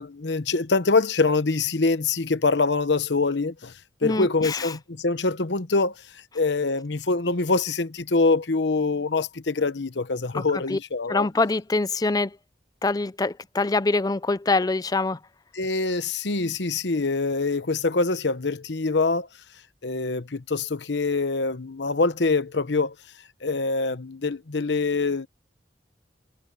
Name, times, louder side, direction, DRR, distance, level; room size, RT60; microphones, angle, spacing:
voice 1, 0.0-3.7 4.0-5.9 6.3-11.3 15.5-19.3 19.8-22.9 23.4-25.3, left 3 dB, 80° left, 1.0 m, -24 dB
voice 2, 4.0-4.7 10.3-10.8 11.1-12.3 12.8-15.2, left 3 dB, 20° left, 0.5 m, -24 dB
head